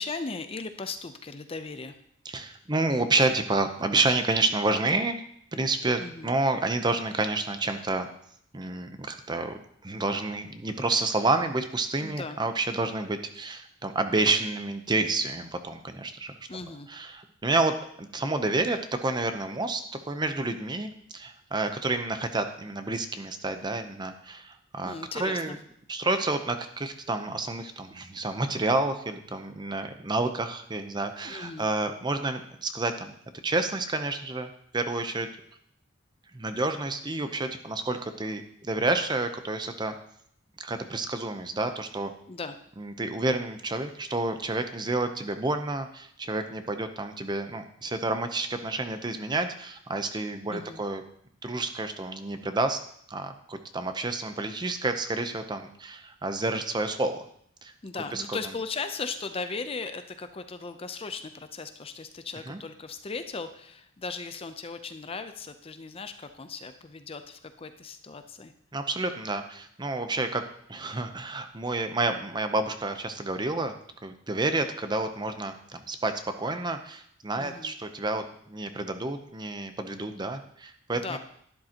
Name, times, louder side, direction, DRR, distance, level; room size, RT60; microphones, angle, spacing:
voice 1, 0.0-1.9 6.0-6.3 12.0-12.4 16.5-16.9 24.8-25.6 31.2-31.7 42.3-42.5 50.5-50.8 57.8-68.5 77.4-77.7 80.9-81.2, left 4 dB, 30° left, 9 dB, 0.6 m, -37 dB
voice 2, 2.2-5.2 5.5-8.1 8.5-16.3 16.9-24.9 25.2-25.6 25.9-33.1 33.4-35.3 36.3-39.9 40.6-42.1 42.8-51.0 51.4-52.8 53.1-57.3 57.6-58.4 62.5-62.6 68.7-70.4 70.7-73.8 74.0-76.1 76.4-81.2, right 2 dB, 20° right, 8 dB, 0.7 m, -29 dB
12.0 x 10.5 x 2.9 m, 0.67 s
head